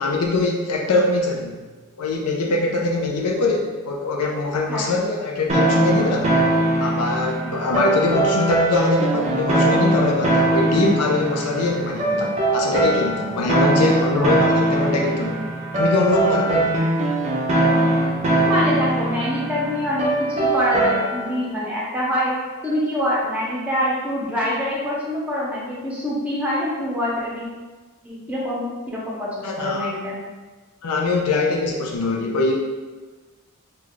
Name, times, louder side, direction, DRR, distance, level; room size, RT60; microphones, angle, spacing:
voice 1, 0.0-1.5 2.0-6.4 6.8-15.5 15.8-16.8 29.4-29.9 30.8-32.5, left 3 dB, 85° left, 0 dB, 0.5 m, -22 dB
sound 1, 5.5-21.4, right 1 dB, 30° right, 0.5 m, -21 dB
voice 2, 18.4-22.3 22.6-27.5 28.0-30.2, equal, 5° right, -6 dB, 0.8 m, -25 dB
3.2 x 2.3 x 3.8 m, 1.3 s
head